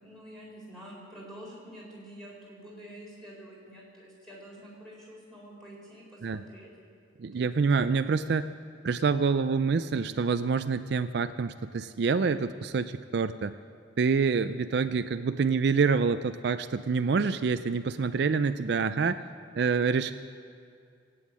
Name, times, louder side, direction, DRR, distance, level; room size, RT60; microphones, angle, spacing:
voice 1, 0.0-6.7 7.4-7.9, equal, 5° left, -5 dB, 4.2 m, -47 dB
voice 2, 7.2-8.5 8.8-13.6 14.0-19.2 19.5-20.1, right 5 dB, 60° right, 11 dB, 0.4 m, -27 dB
17.0 x 9.3 x 8.4 m, 2.3 s
head